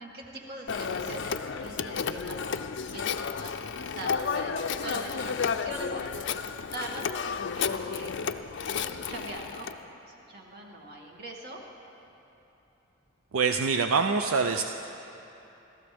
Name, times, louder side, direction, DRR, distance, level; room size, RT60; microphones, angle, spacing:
voice 1, 0.0-8.3 8.7-9.8 10.1-11.6, right 1 dB, 50° right, -1 dB, 2.2 m, -42 dB
Telephone, 0.7-9.8, left 6 dB, 60° left, 0.5 m, -32 dB
voice 2, 13.3-14.6, right 5 dB, 85° right, 6 dB, 0.5 m, -25 dB
28.0 x 14.0 x 3.5 m, 3.0 s
head